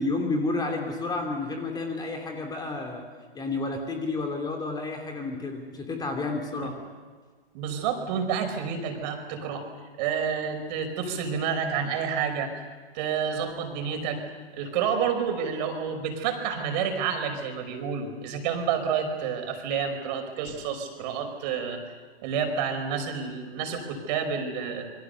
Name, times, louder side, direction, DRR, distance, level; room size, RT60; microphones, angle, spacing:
voice 1, 0.0-3.0 3.3-6.8, left 3 dB, 15° left, 3 dB, 2.8 m, -30 dB
voice 2, 7.5-9.7 10.0-12.5 12.9-14.2 14.5-21.8 22.2-24.9, right 7 dB, 45° right, 5 dB, 5.4 m, -29 dB
27.5 x 23.5 x 6.9 m, 1.5 s
hypercardioid pair, 125°, 31 cm